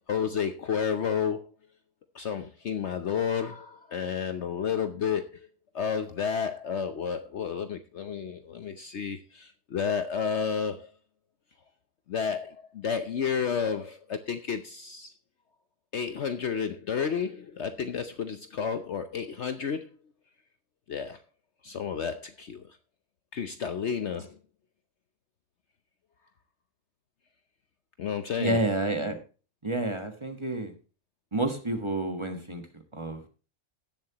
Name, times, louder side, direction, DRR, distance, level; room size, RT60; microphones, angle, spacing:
voice 1, 0.1-1.5 2.1-5.5 5.7-10.9 12.1-15.1 15.9-19.9 20.9-21.2 21.6-22.7 23.3-24.4 28.0-28.6, left 7 dB, 55° left, 0.9 m, -31 dB
voice 2, 28.4-29.2 29.6-30.7 31.3-33.3, right 2 dB, 20° right, 1.3 m, -30 dB
17.5 x 7.5 x 2.9 m
omnidirectional pair, 1.6 m